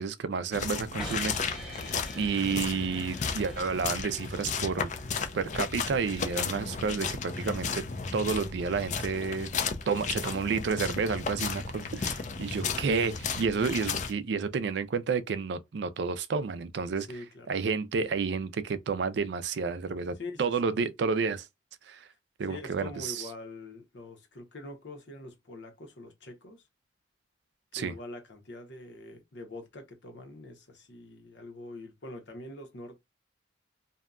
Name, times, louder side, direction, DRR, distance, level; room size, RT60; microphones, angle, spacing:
voice 1, 0.0-1.8 2.2-4.9 5.3-7.8 8.1-9.5 9.9-17.1 17.5-21.5 21.9-22.1 22.4-23.2 27.7-27.9, right 5 dB, 65° right, 0.4 m, -30 dB
sound 1, 0.5-14.1, left 5 dB, 40° left, 0.4 m, -34 dB
sound 2, 1.0-7.0, equal, 5° right, 0.8 m, -46 dB
voice 2, 12.5-12.9 17.0-17.5 20.1-20.8 22.1-26.6 27.7-32.9, left 2 dB, 70° left, 0.9 m, -45 dB
2.7 x 2.2 x 2.3 m
head